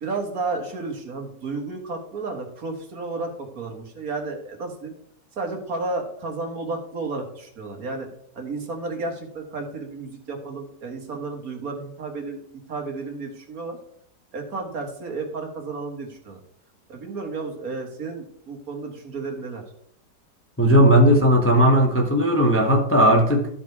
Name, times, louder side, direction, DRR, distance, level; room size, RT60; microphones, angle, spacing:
voice 1, 0.0-4.9 5.4-8.1 8.4-12.4 12.7-13.8 14.3-16.4 16.9-19.6, right 3 dB, 55° right, 1.9 m, -32 dB
voice 2, 20.6-23.5, equal, 10° left, 0.8 m, -16 dB
13.0 x 5.1 x 4.6 m
omnidirectional pair, 1.8 m